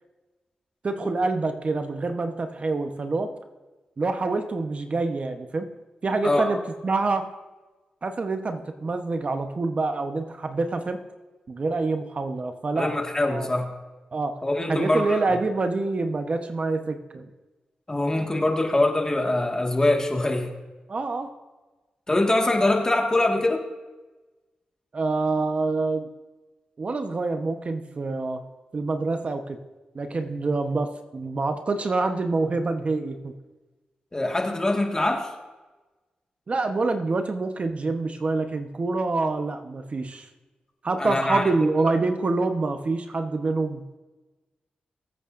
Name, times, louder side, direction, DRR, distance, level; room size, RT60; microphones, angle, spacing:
voice 1, 0.8-3.3 4.0-5.7 6.0-7.3 8.0-11.0 11.5-13.5 14.1-14.4 14.7-17.3 20.9-21.3 24.9-26.1 26.8-28.4 28.7-29.6 29.9-33.3 36.5-40.3 40.8-43.8, right 3 dB, 45° right, 7 dB, 1.0 m, -26 dB
voice 2, 12.8-13.7 14.4-15.2 17.9-20.5 22.1-23.6 34.1-35.3 41.0-41.4, left 2 dB, 20° left, 3 dB, 1.8 m, -23 dB
21.5 x 8.4 x 2.6 m, 1.2 s
cardioid pair, 75°, 3 cm